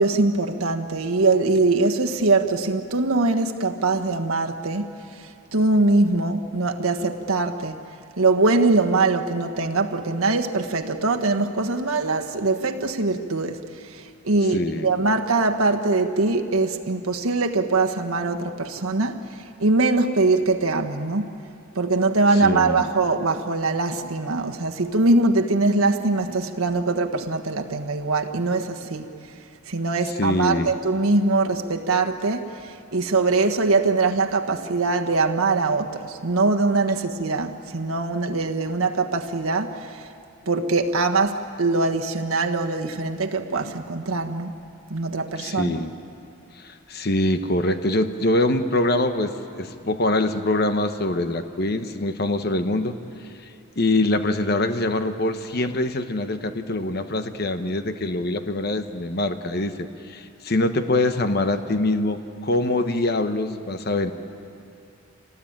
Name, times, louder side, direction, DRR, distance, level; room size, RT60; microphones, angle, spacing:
voice 1, 0.0-4.9 5.5-7.8 8.2-13.6 13.9-21.3 21.7-29.1 29.7-40.0 40.5-44.5 44.9-45.8, right 3 dB, 90° right, 1.4 m, -22 dB
voice 2, 14.5-14.9 22.4-22.9 30.2-30.7 45.4-45.9 46.6-53.0 53.8-64.1, left 2 dB, 50° left, 1.0 m, -24 dB
26.5 x 18.5 x 8.9 m
head